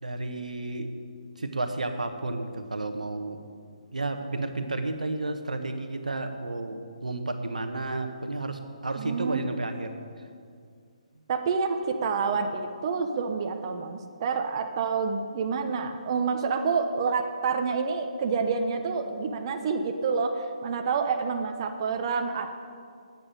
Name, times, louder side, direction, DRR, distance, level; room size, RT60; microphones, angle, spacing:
voice 1, 0.0-0.9 1.4-3.4 3.9-10.0, right 2 dB, 85° right, 6 dB, 1.3 m, -32 dB
voice 2, 8.9-9.4 11.3-22.5, right 5 dB, 40° right, 5 dB, 1.1 m, -28 dB
10.0 x 8.7 x 9.0 m, 2.2 s
figure-of-eight pair, 145°, 4 cm